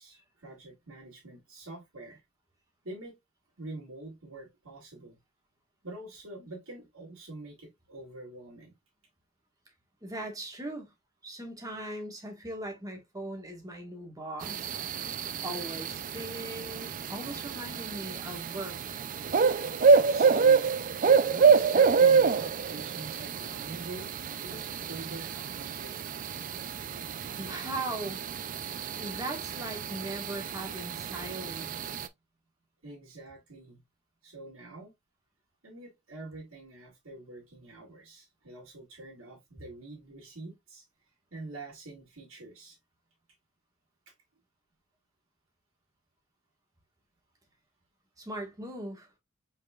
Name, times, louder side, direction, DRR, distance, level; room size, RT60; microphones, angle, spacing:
voice 1, 0.0-2.2 2.8-3.2 3.6-5.2 5.8-8.7 20.0-20.8 21.2-24.2 24.4-26.0 32.8-33.8 34.2-34.9 35.6-40.8 41.3-42.8, right 2 dB, 75° right, 2.3 m, -45 dB
voice 2, 10.0-10.9 11.2-14.7 15.4-19.0 27.4-28.2 29.0-31.9 48.2-49.1, right 1 dB, 15° right, 1.4 m, -39 dB
sound 1, 14.4-32.1, right 5 dB, 40° right, 0.4 m, -27 dB
5.2 x 4.1 x 2.3 m
head